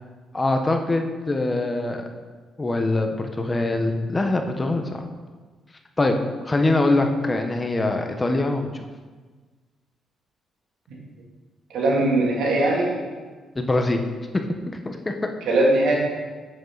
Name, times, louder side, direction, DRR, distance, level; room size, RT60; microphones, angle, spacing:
voice 1, 0.3-2.0 2.6-5.0 6.0-6.2 6.4-8.8 13.5-14.0 14.7-15.3, left 2 dB, 20° left, 5 dB, 1.0 m, -23 dB
voice 2, 11.7-12.9 15.5-15.9, right 2 dB, 80° right, -3 dB, 2.8 m, -20 dB
9.4 x 8.3 x 4.0 m, 1.4 s
cardioid pair, 90°, 0 cm